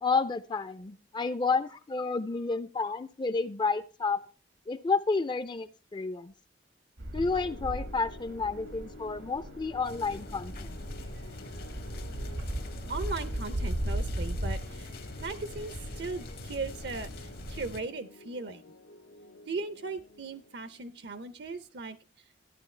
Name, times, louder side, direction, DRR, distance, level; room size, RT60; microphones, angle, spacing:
voice 1, 0.0-4.2 4.7-6.3 7.1-10.8, left 4 dB, 25° left, 13 dB, 0.4 m, -30 dB
sound 1, 7.0-17.8, right 1 dB, 85° right, 1.5 m, -38 dB
sound 2, 7.3-21.6, left 2 dB, 80° left, 0.7 m, -52 dB
sound 3, 9.8-17.8, left 2 dB, 55° left, 0.9 m, -45 dB
voice 2, 12.9-14.9 15.2-18.6 19.5-22.0, right 3 dB, 65° right, 13 dB, 0.6 m, -38 dB
12.5 x 9.9 x 3.2 m, 0.34 s
head